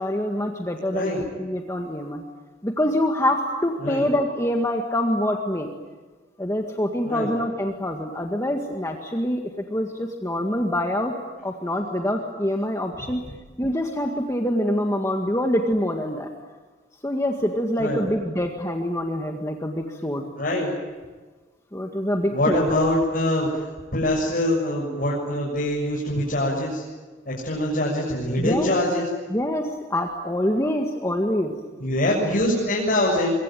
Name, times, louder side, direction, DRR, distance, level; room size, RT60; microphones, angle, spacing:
voice 1, 0.0-2.2 2.6-5.7 6.4-11.1 11.4-13.2 13.6-16.3 17.0-20.2 21.7-22.6 28.4-28.7 29.3-31.5, left 1 dB, 15° left, 2 dB, 1.9 m, -25 dB
voice 2, 0.9-1.2 3.8-4.1 7.0-7.3 17.8-18.0 20.4-20.7 22.3-26.8 27.3-29.1 31.8-33.4, left 1 dB, 50° left, -4 dB, 7.0 m, -24 dB
25.0 x 24.0 x 9.2 m, 1.4 s
head